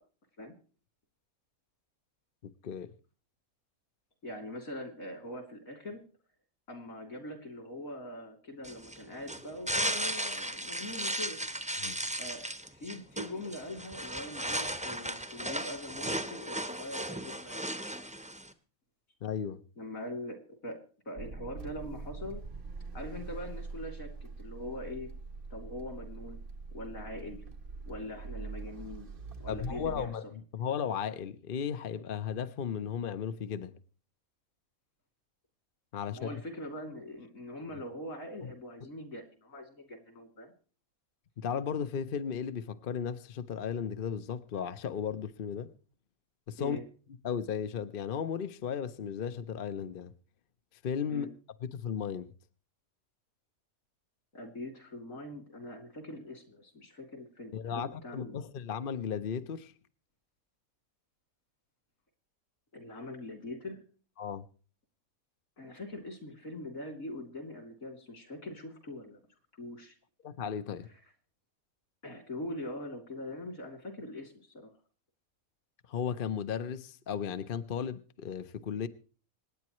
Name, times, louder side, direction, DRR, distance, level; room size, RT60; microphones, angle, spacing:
voice 1, 2.4-2.9 11.8-12.0 19.2-19.6 29.5-30.2 30.5-33.8 35.9-36.3 38.4-38.5 41.4-45.7 46.5-46.8 47.2-50.1 50.8-51.3 51.6-52.3 57.5-59.7 64.2-64.4 70.2-70.9 75.9-78.9, left 7 dB, 50° left, 0.8 m, -35 dB
voice 2, 4.2-6.0 6.7-11.4 12.2-17.6 19.8-20.8 21.0-22.4 22.9-25.1 25.5-26.4 26.7-27.4 27.9-29.1 29.4-30.1 36.1-40.5 46.6-46.8 51.1-51.3 54.3-58.4 62.7-63.8 65.6-69.2 69.5-69.9 72.0-74.7, left 1 dB, 70° left, 3.4 m, -42 dB
sound 1, 8.6-18.5, right 1 dB, 5° right, 0.8 m, -36 dB
sound 2, 21.2-30.1, right 4 dB, 45° right, 1.0 m, -43 dB
26.0 x 9.5 x 3.0 m
omnidirectional pair, 1.5 m